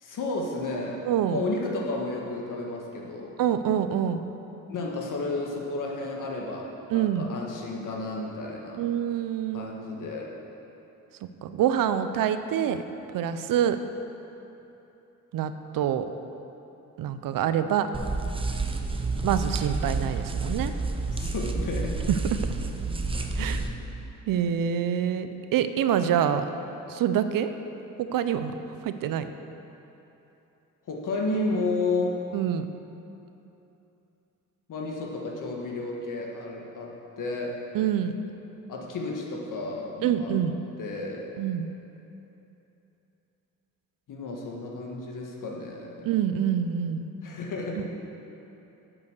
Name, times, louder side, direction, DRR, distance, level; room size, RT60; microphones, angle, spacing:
voice 1, 0.0-1.0 1.3-3.4 4.7-8.8 9.5-10.4 20.9-22.0 23.4-23.8 30.9-32.2 34.7-37.6 38.7-40.4 40.8-41.3 44.1-46.1 47.2-47.9, left 2 dB, 70° left, -1 dB, 1.6 m, -32 dB
voice 2, 1.0-1.4 3.4-4.2 6.9-7.3 8.8-9.7 11.4-12.8 13.1-13.8 15.3-16.1 17.0-17.9 19.2-20.7 22.1-22.5 23.4-23.6 24.3-26.4 26.9-27.5 28.0-28.5 28.8-29.3 32.3-32.7 37.7-38.1 40.0-40.6 41.4-41.7 46.0-47.1, right 9 dB, 85° right, 10 dB, 0.6 m, -26 dB
sound 1, 17.9-23.7, right 3 dB, 15° right, 0.6 m, -29 dB
8.5 x 6.9 x 6.6 m, 3.0 s
cardioid pair, 105°, 33 cm